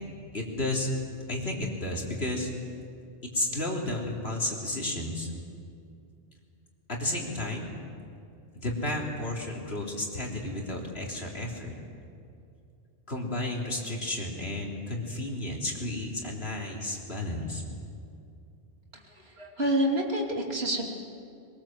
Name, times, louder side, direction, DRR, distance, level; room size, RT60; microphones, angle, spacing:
voice 1, 0.3-0.9 1.3-2.5 3.3-5.3 6.9-7.7 8.5-11.7 13.1-17.6, left 1 dB, 65° left, -1 dB, 3.7 m, -32 dB
voice 2, 18.9-20.9, right 1 dB, 65° right, 0 dB, 3.1 m, -28 dB
22.5 x 22.0 x 7.5 m, 2.5 s
omnidirectional pair, 1.1 m